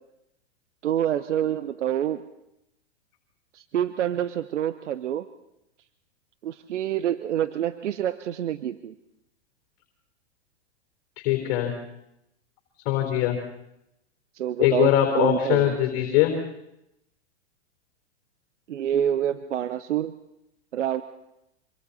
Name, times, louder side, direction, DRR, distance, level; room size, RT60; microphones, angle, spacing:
voice 1, 0.8-2.2 3.5-5.2 6.4-8.9 14.3-15.8 18.7-20.1 20.7-21.0, right 10 dB, 80° right, 13 dB, 0.9 m, -27 dB
voice 2, 11.2-11.7 12.9-13.4 14.6-16.3, left 13 dB, 45° left, 3 dB, 4.1 m, -22 dB
25.5 x 25.5 x 4.2 m, 0.85 s
hypercardioid pair, 120°, 35 cm